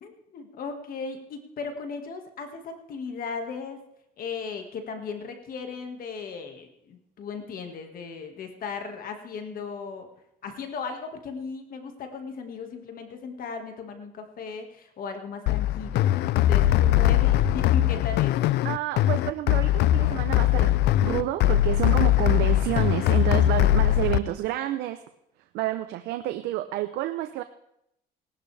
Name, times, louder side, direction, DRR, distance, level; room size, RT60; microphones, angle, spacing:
voice 1, 0.0-3.8 4.2-10.1 10.4-18.4, left 5 dB, 60° left, 5 dB, 1.9 m, -37 dB
sound 1, 15.5-24.2, left 13 dB, 80° left, 0.6 m, -21 dB
voice 2, 18.6-20.7 21.0-25.0 25.5-27.4, right 15 dB, 85° right, 9 dB, 0.7 m, -29 dB
19.0 x 11.5 x 3.4 m, 0.78 s
cardioid pair, 110°, 17 cm